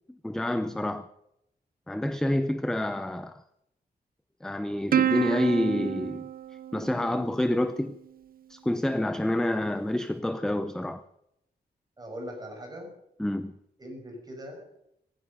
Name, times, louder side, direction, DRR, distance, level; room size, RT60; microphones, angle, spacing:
voice 1, 0.1-1.1 1.9-3.4 4.4-6.3 6.7-8.0 8.5-11.0 13.2-13.5, left 1 dB, 5° left, 0.6 m, -28 dB
Plucked string instrument, 4.9-7.7, right 10 dB, 55° right, 0.6 m, -29 dB
voice 2, 12.0-12.9 13.8-14.8, equal, 20° right, 5.9 m, -41 dB
17.5 x 15.5 x 5.3 m
wide cardioid pair, 180°, 18 cm